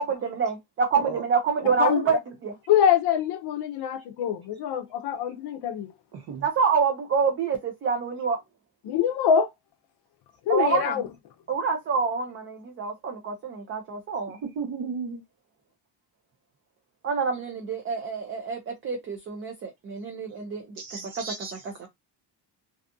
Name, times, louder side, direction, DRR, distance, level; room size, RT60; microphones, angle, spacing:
voice 1, 0.0-2.5 6.4-8.4 10.5-10.9 11.5-14.4 17.0-20.6 21.2-21.3 21.6-21.9, right 5 dB, 30° right, 0.4 m, -27 dB
voice 2, 1.8-2.2 2.7-5.9 8.8-9.5 10.5-11.1, left 8 dB, 60° left, 0.5 m, -24 dB
voice 3, 6.1-6.4 14.4-15.2 20.8-21.5, right 5 dB, 50° right, 1.0 m, -34 dB
2.6 x 2.3 x 2.5 m
cardioid pair, 175°, 45 cm